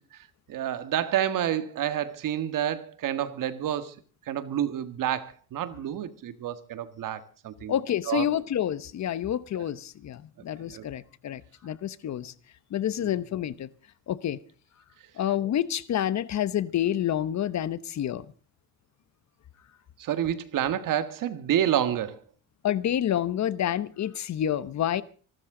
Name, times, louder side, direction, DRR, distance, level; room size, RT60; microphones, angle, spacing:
voice 1, 0.5-4.0 4.3-7.7 8.1-8.3 10.7-10.8 13.0-13.1 20.0-22.2, right 10 dB, 60° right, 1.7 m, -29 dB
voice 2, 7.7-12.3 12.7-13.7 14.1-14.4 15.2-18.3 22.6-25.0, left 10 dB, 50° left, 1.0 m, -28 dB
25.5 x 13.0 x 3.8 m
cardioid pair, 100°, 36 cm